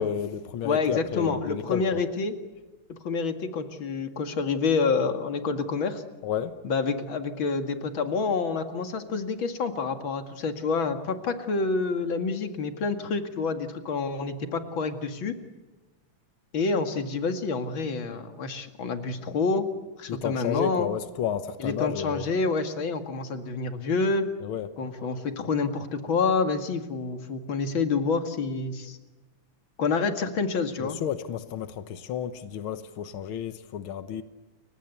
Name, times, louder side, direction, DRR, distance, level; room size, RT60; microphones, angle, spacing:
voice 1, 0.0-2.0 6.2-6.6 20.1-22.3 24.4-24.7 30.8-34.2, left 9 dB, 70° left, 1.2 m, -31 dB
voice 2, 0.6-2.3 2.9-6.0 6.6-15.3 16.5-19.7 20.0-20.9 21.6-24.3 24.8-29.0 29.8-31.0, left 4 dB, 40° left, 2.4 m, -28 dB
29.5 x 24.0 x 8.2 m
omnidirectional pair, 3.7 m